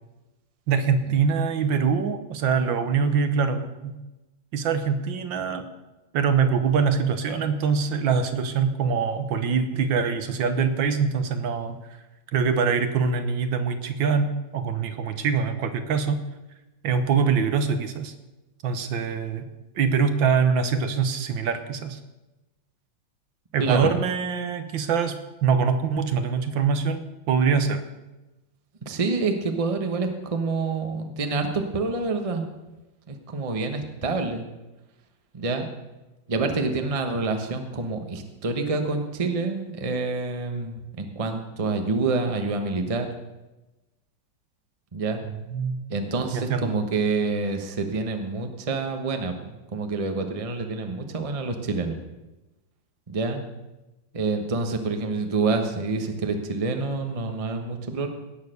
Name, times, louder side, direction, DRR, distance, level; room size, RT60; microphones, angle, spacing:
voice 1, 0.7-4.0 4.5-5.6 6.1-11.8 12.3-16.2 16.8-18.1 18.6-19.4 19.7-22.0 23.5-25.2 25.4-27.8 45.5-45.8 46.3-46.7, right 6 dB, 70° right, 9 dB, 1.6 m, -24 dB
voice 2, 23.6-23.9 28.8-32.5 33.1-34.4 35.3-35.7 36.3-43.1 44.9-45.2 45.9-52.0 53.1-53.4 54.1-58.1, right 3 dB, 25° right, 5 dB, 0.9 m, -27 dB
17.5 x 6.6 x 6.6 m, 1.1 s
omnidirectional pair, 2.3 m